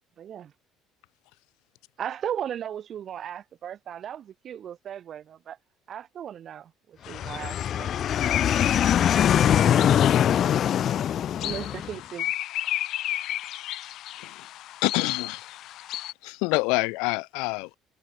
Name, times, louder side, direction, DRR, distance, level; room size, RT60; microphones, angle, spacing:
voice 1, 0.2-0.5 2.0-5.6 5.9-7.9 11.4-12.3, right 9 dB, 45° right, 3.4 m, -36 dB
sound 1, 7.0-16.1, left 14 dB, 60° left, 2.7 m, -34 dB
voice 2, 7.2-11.5, left 10 dB, 45° left, 0.5 m, -22 dB
voice 3, 14.8-15.4 16.2-17.8, left 28 dB, 90° left, 6.4 m, -26 dB
cardioid pair, 135°, 0 cm